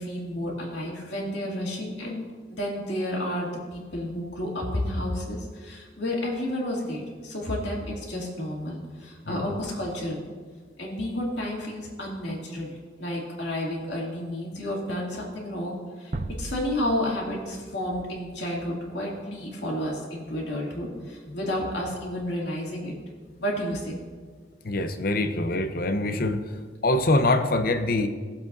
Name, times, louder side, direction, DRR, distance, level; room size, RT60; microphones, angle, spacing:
voice 1, 0.0-2.2 2.5-10.2 10.8-22.9 23.4-24.0, left 1 dB, 70° left, -3 dB, 2.5 m, -31 dB
sound 1, 16.1-19.1, right 2 dB, 40° right, 0.5 m, -38 dB
voice 2, 24.6-26.4 26.8-28.1, left 2 dB, 55° left, 8 dB, 0.7 m, -24 dB
17.5 x 7.6 x 2.7 m, 1.6 s
head